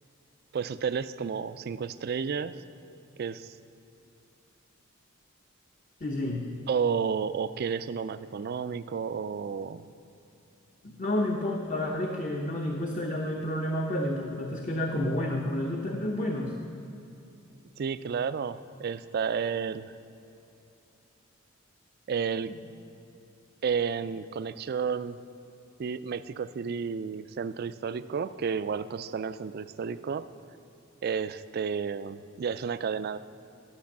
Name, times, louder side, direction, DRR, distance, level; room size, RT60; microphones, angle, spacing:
voice 1, 0.5-2.6 3.2-3.6 6.7-9.9 17.8-19.9 22.1-22.5 23.6-25.2 25.8-30.3 31.0-33.2, right 6 dB, 50° right, 14 dB, 0.3 m, -31 dB
voice 2, 6.0-6.4 10.8-16.5 22.5-22.6, left 1 dB, 35° left, 1 dB, 0.8 m, -30 dB
12.0 x 6.1 x 7.3 m, 2.8 s
head